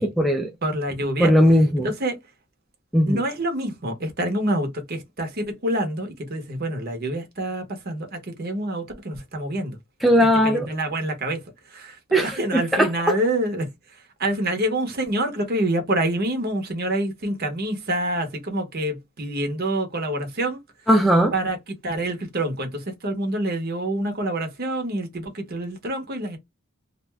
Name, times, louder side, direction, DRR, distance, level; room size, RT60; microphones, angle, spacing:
voice 1, 0.0-0.5 1.2-1.9 2.9-3.2 10.0-10.7 12.1-13.2 20.9-21.3, equal, ahead, 0.3 m, -18 dB
voice 2, 0.6-1.3 1.8-2.2 3.1-9.8 10.4-11.4 11.7-13.7 14.2-20.6 21.3-21.6 21.8-26.4, right 1 dB, 50° right, 0.8 m, -27 dB
2.5 x 2.2 x 3.3 m
head